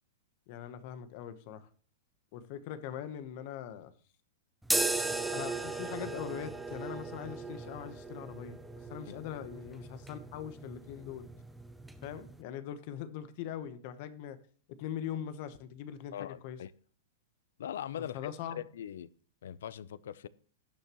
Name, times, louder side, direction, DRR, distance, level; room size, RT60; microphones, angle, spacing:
voice 1, 0.5-1.7 2.3-3.9 5.3-11.3 12.0-14.4 14.8-16.6 18.0-18.6, left 10 dB, 35° left, 1.0 m, -42 dB
sound 1, 4.6-12.4, right 2 dB, ahead, 0.5 m, -37 dB
voice 2, 16.1-16.7 17.6-19.1 19.4-20.3, left 10 dB, 70° left, 0.5 m, -41 dB
18.0 x 6.4 x 3.0 m
supercardioid pair, 175°, 0 cm